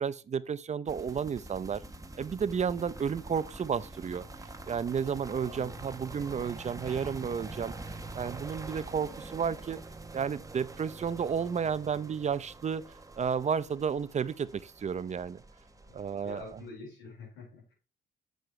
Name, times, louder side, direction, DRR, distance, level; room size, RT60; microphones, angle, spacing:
voice 1, 0.0-1.8 2.2-4.3 4.7-7.7 8.1-9.8 10.1-12.8 13.2-15.4 15.9-16.6, right 7 dB, 35° right, 0.6 m, -32 dB
sound 1, 0.9-16.7, right 2 dB, 15° right, 1.0 m, -45 dB
voice 2, 5.4-5.8 15.9-16.0 16.2-17.7, left 3 dB, 90° left, 4.7 m, -46 dB
7.8 x 6.8 x 3.2 m
cardioid pair, 90°, 20 cm